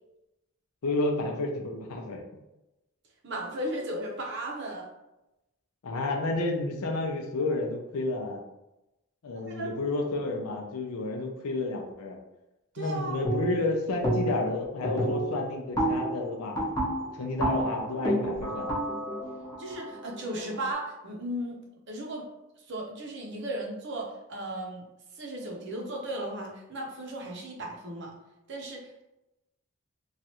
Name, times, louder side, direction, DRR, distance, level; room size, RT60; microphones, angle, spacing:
voice 1, 0.8-2.2 5.8-8.4 9.2-12.2 12.8-16.6 17.1-18.8, left 2 dB, 85° left, 1 dB, 0.5 m, -31 dB
voice 2, 3.2-4.9 9.5-9.7 12.7-13.2 19.6-21.6 21.9-22.3 22.6-24.8 25.2-28.1 28.5-29.0, right 1 dB, 55° right, 0 dB, 0.6 m, -36 dB
sound 1, 13.2-13.7 14.0-14.5 14.8-20.7, right 1 dB, 15° left, 0.7 m, -30 dB
3.1 x 2.4 x 2.8 m, 0.93 s
head